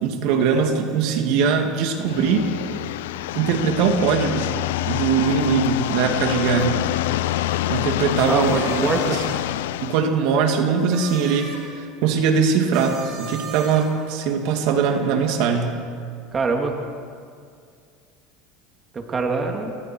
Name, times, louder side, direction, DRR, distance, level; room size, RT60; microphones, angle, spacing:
voice 1, 0.0-2.5 3.3-4.5 4.9-6.8 7.7-9.2 9.8-15.8, right 6 dB, 65° right, 3 dB, 2.7 m, -21 dB
sound 1, 2.0-10.0, left 14 dB, 85° left, 0.5 m, -26 dB
sound 2, 4.9-9.3, left 4 dB, 60° left, 2.4 m, -41 dB
sound 3, 8.1-9.6 10.8-11.7 12.7-14.1, right 5 dB, 45° right, 4.6 m, -37 dB
voice 2, 8.3-9.2 16.3-16.7 18.9-19.8, right 4 dB, 25° right, 2 dB, 2.7 m, -24 dB
29.0 x 22.5 x 4.7 m, 2.2 s
supercardioid pair, 120°, 0 cm